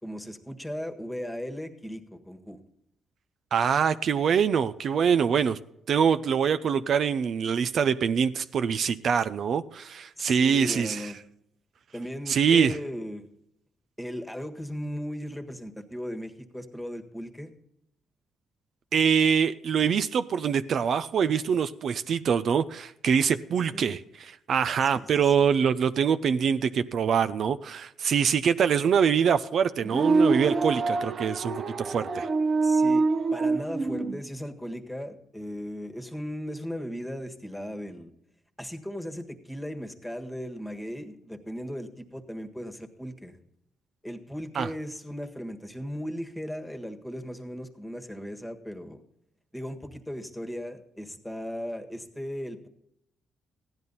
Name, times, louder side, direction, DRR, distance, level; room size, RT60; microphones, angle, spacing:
voice 1, 0.0-2.6 10.2-11.2 11.9-13.3 14.0-17.5 23.7-24.0 24.8-25.4 32.6-33.0 33.3-38.1 38.6-43.4 44.0-49.0 49.5-52.7, equal, 5° left, 1.6 m, -37 dB
voice 2, 3.5-5.6 5.9-11.1 12.3-12.8 18.9-32.3 44.6-44.7, right 7 dB, 60° right, 0.5 m, -24 dB
sound 1, 29.8-34.2, right 3 dB, 45° right, 0.9 m, -25 dB
15.5 x 10.5 x 4.1 m
cardioid pair, 90°, 0 cm